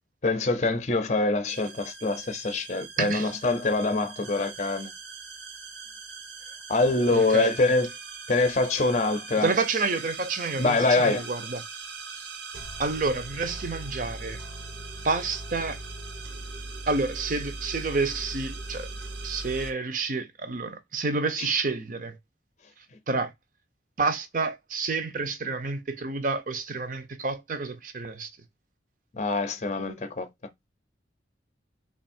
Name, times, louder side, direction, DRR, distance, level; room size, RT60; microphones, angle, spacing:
voice 1, 0.2-4.9 6.7-7.9 8.3-9.5 10.6-11.2 29.2-30.3, left 3 dB, 40° left, 0.6 m, -24 dB
sound 1, 1.5-19.7, right 3 dB, 70° right, 0.8 m, -40 dB
voice 2, 3.0-3.3 7.1-7.5 9.4-11.6 12.2-12.3 12.8-14.4 15.0-15.8 16.9-18.9 19.2-22.2 23.1-23.3 24.0-28.3, right 3 dB, 45° right, 0.6 m, -29 dB
3.5 x 2.4 x 4.3 m
head